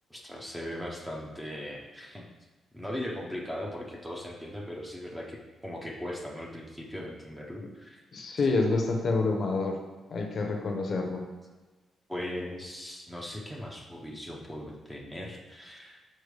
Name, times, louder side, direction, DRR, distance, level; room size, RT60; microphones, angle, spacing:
voice 1, 0.1-2.2 2.7-8.0 12.1-16.0, left 1 dB, 5° right, -2 dB, 0.7 m, -39 dB
voice 2, 8.1-9.8 10.1-11.2, left 3 dB, 35° left, 2 dB, 0.7 m, -27 dB
6.6 x 4.4 x 3.2 m, 1.3 s
wide cardioid pair, 180°, 0 cm